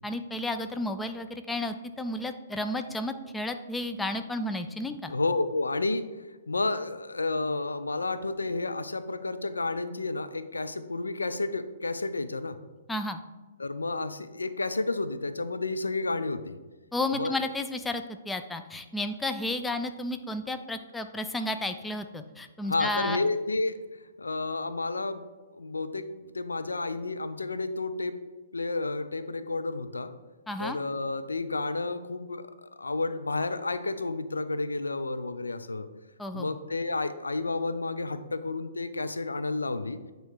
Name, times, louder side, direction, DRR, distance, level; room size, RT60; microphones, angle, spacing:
voice 1, 0.0-5.1 12.9-13.2 16.9-23.2 30.5-30.8 36.2-36.5, left 1 dB, 5° left, 7 dB, 0.3 m, -32 dB
voice 2, 5.1-6.0 6.5-12.5 13.6-16.5 17.1-17.3 22.7-23.7 24.2-25.2 25.5-28.2 28.5-30.1 30.6-35.9 36.3-40.0, left 3 dB, 75° left, 10 dB, 0.4 m, -31 dB
9.2 x 3.1 x 4.8 m, 1.2 s
figure-of-eight pair, 120°, 0 cm